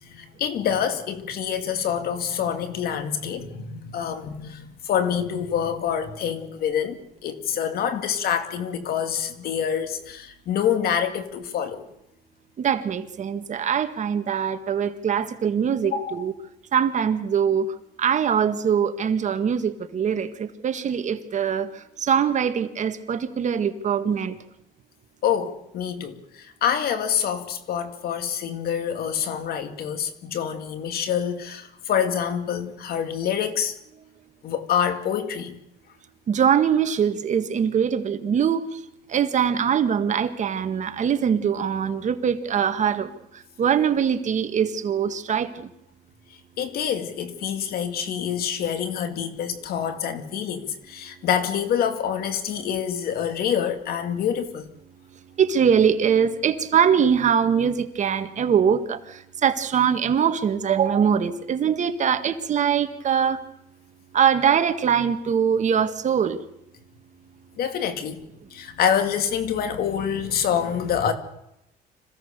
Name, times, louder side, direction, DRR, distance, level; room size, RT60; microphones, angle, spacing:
voice 1, 0.0-11.8 15.8-16.2 25.2-33.8 34.4-35.6 46.6-54.7 67.6-68.2 68.5-71.1, left 8 dB, 65° left, 2.5 m, -26 dB
voice 2, 12.6-16.3 16.7-17.7 18.0-24.4 36.3-38.8 39.1-43.1 43.6-45.7 55.4-63.4 64.1-66.4, right 7 dB, 45° right, 1.7 m, -22 dB
26.5 x 16.0 x 6.8 m
cardioid pair, 110°, 17 cm